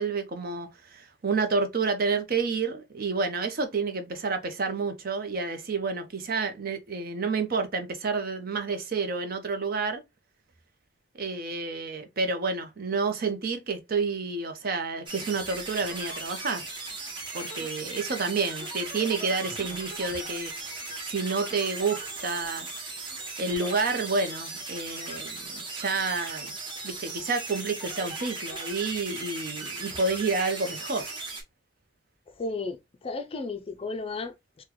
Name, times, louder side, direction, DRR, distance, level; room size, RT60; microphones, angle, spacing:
voice 1, 0.0-10.0 11.2-16.7 17.3-20.7 21.1-22.7 23.4-26.5 26.8-31.1, right 4 dB, 50° right, 0.6 m, -29 dB
sound 1, 15.1-31.4, right 3 dB, 25° right, 0.9 m, -37 dB
voice 2, 32.4-34.6, left 3 dB, 30° left, 0.4 m, -34 dB
3.8 x 2.2 x 2.9 m
head